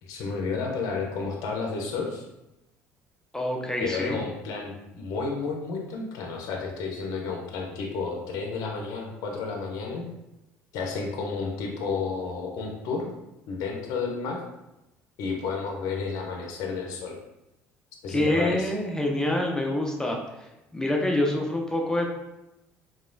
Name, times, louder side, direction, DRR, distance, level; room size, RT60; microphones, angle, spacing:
voice 1, 0.0-2.3 3.8-10.1 10.7-13.1 13.5-14.4 15.2-17.2 18.0-18.7, left 4 dB, 65° left, 1 dB, 0.5 m, -31 dB
voice 2, 3.3-4.2 18.1-22.1, left 1 dB, 10° left, 0 dB, 0.4 m, -26 dB
2.9 x 2.2 x 2.5 m, 0.94 s
hypercardioid pair, 70°, 7 cm